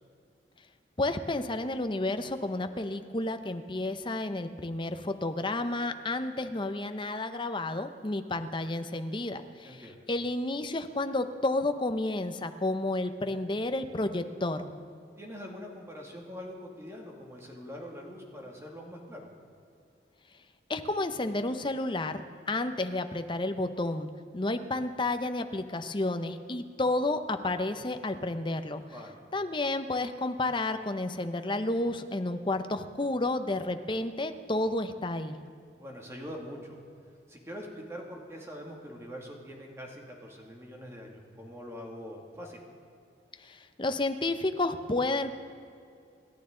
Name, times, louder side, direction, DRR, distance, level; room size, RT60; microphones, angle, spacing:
voice 1, 1.0-9.8 10.1-14.7 20.7-28.8 29.3-35.4 43.4-45.3, left 2 dB, 25° left, 8 dB, 0.8 m, -31 dB
voice 2, 9.6-10.0 15.2-19.3 28.9-29.2 35.8-36.8 37.3-42.6, equal, 15° right, 0 dB, 2.3 m, -43 dB
27.5 x 12.0 x 3.9 m, 2.4 s
head